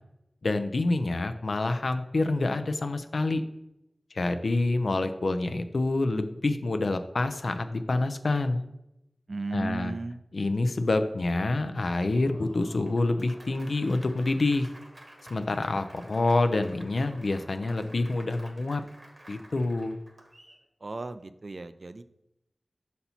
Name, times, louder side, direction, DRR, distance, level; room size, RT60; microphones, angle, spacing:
voice 1, 0.4-3.4 4.1-8.6 9.5-9.9 10.3-14.7 15.3-18.8 19.3-20.0, left 2 dB, 75° left, 9 dB, 0.5 m, -27 dB
voice 2, 9.3-10.2 20.8-22.0, right 2 dB, 60° right, 11 dB, 0.3 m, -35 dB
Applause, 11.9-20.6, right 1 dB, 45° right, 1.0 m, -52 dB
5.5 x 4.1 x 4.3 m, 0.86 s
wide cardioid pair, 50°, 0 cm